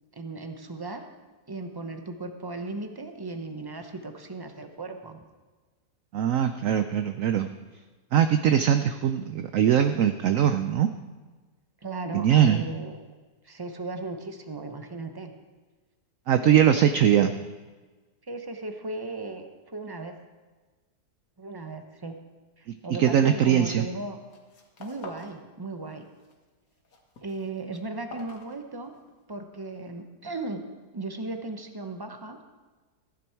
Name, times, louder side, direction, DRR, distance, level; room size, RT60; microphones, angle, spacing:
voice 1, 0.1-1.0 1.5-5.2 11.8-13.0 13.4-15.3 18.2-20.1 21.4-22.1 22.6-24.2 24.8-26.0 27.2-28.9 29.3-30.7 30.9-32.4, right 2 dB, 30° right, 6 dB, 0.4 m, -36 dB
voice 2, 6.1-7.5 8.1-10.9 12.1-12.6 16.3-17.3 23.0-23.8, right 9 dB, 65° right, 9 dB, 0.8 m, -21 dB
sound 1, 23.6-24.0 24.2-25.4 25.7-26.3 26.7-29.1, left 2 dB, 55° left, 1.8 m, -47 dB
15.0 x 10.0 x 4.5 m, 1.3 s
omnidirectional pair, 1.8 m